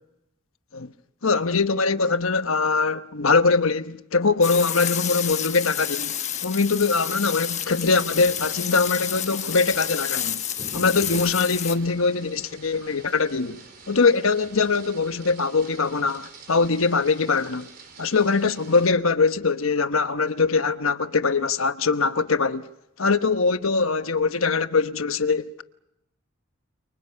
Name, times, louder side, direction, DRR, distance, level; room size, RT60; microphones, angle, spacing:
voice 1, 1.2-6.2 6.4-10.4 10.7-13.6 13.9-17.7 18.0-22.7 23.0-25.6, left 4 dB, 75° left, 1.1 m, -22 dB
sound 1, 4.4-11.8, left 10 dB, 35° left, 1.2 m, -30 dB
sound 2, 6.9-18.9, right 3 dB, 45° right, 4.5 m, -46 dB
29.0 x 28.5 x 5.8 m
head